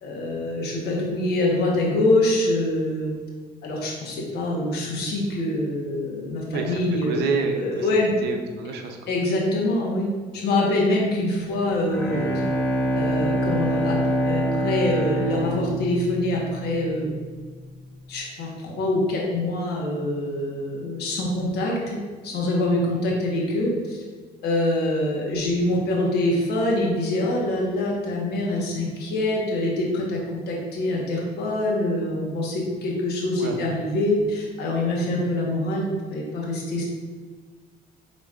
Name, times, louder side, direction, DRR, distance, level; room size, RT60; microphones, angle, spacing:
voice 1, 0.0-3.1 3.6-8.1 9.1-12.3 12.9-14.0 14.2-17.1 18.1-22.0 22.2-24.0 24.4-35.8 36.1-36.8, left 1 dB, 70° left, -2 dB, 1.2 m, -25 dB
voice 2, 6.5-7.9 8.2-9.0 22.7-22.9 33.4-33.6, right 4 dB, 75° right, 4 dB, 0.7 m, -28 dB
Bowed string instrument, 11.5-17.0, equal, 10° left, 1.0 m, -25 dB
5.2 x 4.0 x 2.5 m, 1.5 s
cardioid pair, 110°, 17 cm